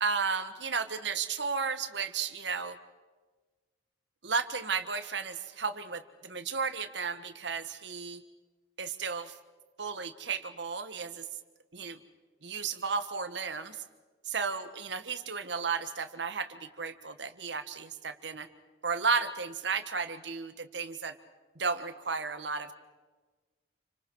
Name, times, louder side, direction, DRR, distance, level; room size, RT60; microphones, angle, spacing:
voice 1, 0.0-2.8 4.2-8.2 8.8-9.3 9.8-11.2 11.7-12.0 12.4-13.8 14.3-18.5 18.8-21.2 21.5-22.7, right 5 dB, 70° right, 10 dB, 1.5 m, -33 dB
29.0 x 26.0 x 4.8 m, 1.3 s
head